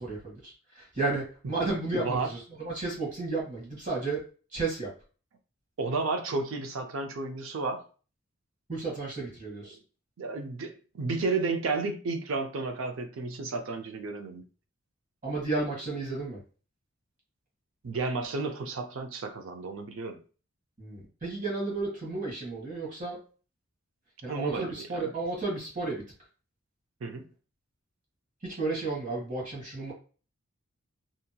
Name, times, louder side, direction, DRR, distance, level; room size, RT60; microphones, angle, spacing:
voice 1, 0.0-4.2 4.5-4.9 8.7-9.8 15.2-16.4 20.8-23.2 24.2-26.0 28.4-29.9, right 3 dB, 35° right, 1.1 m, -33 dB
voice 2, 1.9-2.3 5.8-7.8 10.2-14.4 17.8-20.2 24.3-25.1 27.0-27.3, right 3 dB, 65° right, 0.5 m, -32 dB
2.8 x 2.6 x 2.2 m
head